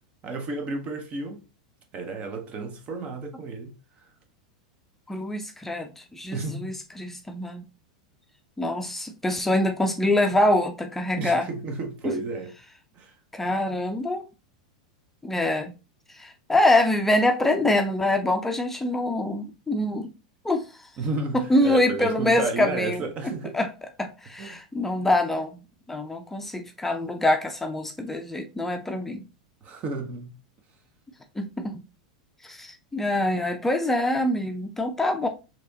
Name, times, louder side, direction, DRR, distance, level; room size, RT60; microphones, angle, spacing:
voice 1, 0.2-1.4 1.9-3.7 6.3-6.8 11.2-12.6 13.0-13.2 21.0-23.6 24.4-24.6 29.6-30.3, right 3 dB, 35° right, 0.9 m, -32 dB
voice 2, 5.1-7.7 8.6-11.5 12.0-12.1 13.3-14.2 15.2-15.7 16.1-20.1 20.4-20.6 21.3-23.1 23.5-23.7 24.0-25.5 25.9-29.3 31.4-31.8 32.4-35.3, left 1 dB, 10° left, 0.6 m, -25 dB
4.7 x 3.0 x 2.7 m
hypercardioid pair, 95°, 4 cm